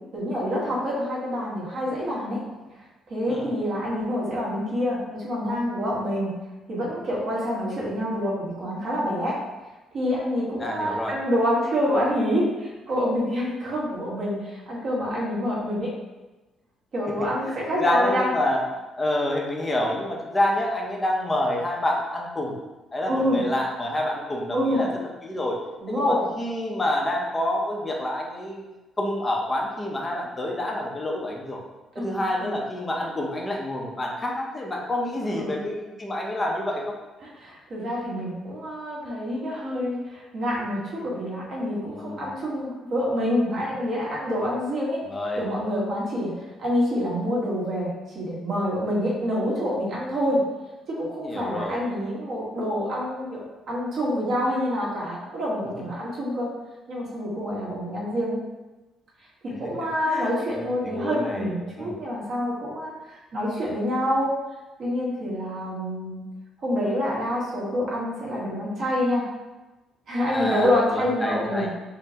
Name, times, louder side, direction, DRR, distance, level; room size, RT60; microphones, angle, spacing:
voice 1, 0.1-2.4 3.1-6.3 6.7-9.3 9.9-15.9 16.9-18.3 23.1-23.4 24.5-24.8 25.8-26.2 31.9-32.5 35.3-35.7 37.4-45.0 45.3-46.3 46.6-50.4 50.9-56.5 56.9-58.4 59.4-64.3 64.8-66.2 66.6-69.2 70.1-71.7, equal, 45° right, -6 dB, 1.3 m, -27 dB
voice 2, 10.6-11.1 17.4-18.6 19.0-22.6 22.9-25.6 25.9-28.7 29.0-31.6 32.0-36.9 41.9-42.3 45.1-45.4 51.2-51.8 60.1-62.0 70.3-71.7, left 1 dB, 20° left, -1 dB, 0.6 m, -28 dB
5.4 x 2.1 x 2.8 m, 1.1 s
cardioid pair, 145°, 0 cm